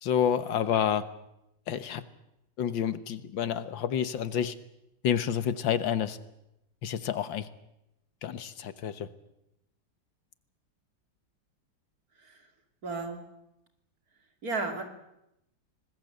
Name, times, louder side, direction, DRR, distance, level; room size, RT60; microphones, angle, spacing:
voice 1, 0.0-1.1 1.7-2.0 2.6-4.5 5.0-6.2 6.8-7.5 8.2-9.1, left 8 dB, 90° left, 13 dB, 1.9 m, -29 dB
voice 2, 12.8-13.3 14.4-14.9, right 3 dB, 50° right, 6 dB, 3.1 m, -33 dB
25.5 x 20.5 x 7.8 m, 0.86 s
omnidirectional pair, 2.0 m